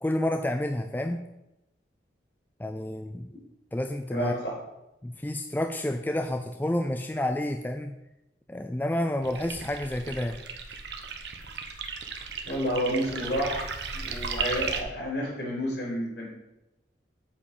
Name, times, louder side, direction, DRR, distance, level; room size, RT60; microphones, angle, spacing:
voice 1, 0.0-1.2 2.6-3.3 3.7-4.4 5.0-7.9 8.5-10.4, left 1 dB, 10° left, 6 dB, 0.4 m, -29 dB
voice 2, 4.1-4.6 12.5-13.6 13.9-16.3, equal, 65° left, -3 dB, 4.0 m, -30 dB
sound 1, 9.2-14.8, right 5 dB, 70° right, 1.0 m, -35 dB
8.5 x 5.1 x 7.1 m, 0.93 s
head